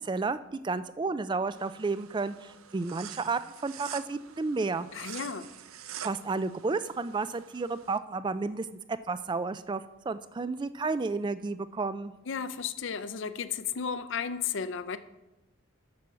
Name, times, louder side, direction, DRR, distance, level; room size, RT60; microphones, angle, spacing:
voice 1, 0.0-4.9 6.0-12.1, right 4 dB, 20° right, 13 dB, 0.3 m, -32 dB
sound 1, 1.5-8.0, right 9 dB, 80° right, 0.6 m, -46 dB
voice 2, 4.9-5.5 12.3-15.0, left 6 dB, 60° left, 11 dB, 0.5 m, -34 dB
7.6 x 6.9 x 6.2 m, 0.99 s
head